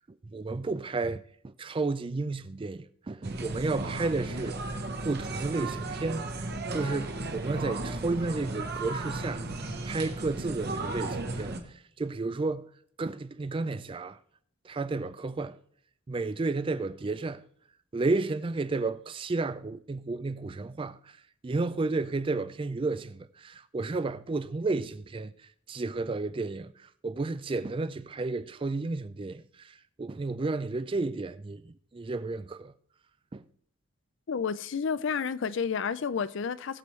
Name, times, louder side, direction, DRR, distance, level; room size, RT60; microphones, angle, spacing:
voice 1, 0.3-4.6 5.0-6.3 6.7-9.5 9.8-11.6 12.0-12.7 13.0-14.2 14.6-15.6 16.1-17.4 17.9-21.2 21.4-25.3 25.7-32.7 33.3-33.4, right 3 dB, 25° right, 0.3 m, -32 dB
sound 1, 3.2-11.6, right 2 dB, 50° right, 1.2 m, -35 dB
voice 2, 34.3-36.8, left 6 dB, 60° left, 0.4 m, -30 dB
20.0 x 7.0 x 3.2 m
head